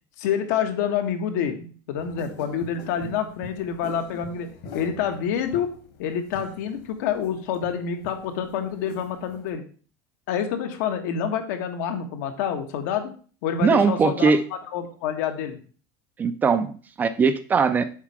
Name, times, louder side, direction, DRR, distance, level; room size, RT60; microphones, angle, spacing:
voice 1, 0.2-5.7 6.0-9.6 10.3-13.1 13.4-14.3 14.7-15.6, left 8 dB, 75° left, 6 dB, 1.3 m, -27 dB
sound 1, 2.0-9.5, left 3 dB, 55° left, 1.7 m, -44 dB
voice 2, 13.6-14.4 16.2-17.8, right 5 dB, 20° right, 11 dB, 0.4 m, -20 dB
7.4 x 4.2 x 4.8 m, 0.41 s
supercardioid pair, 160°, 10 cm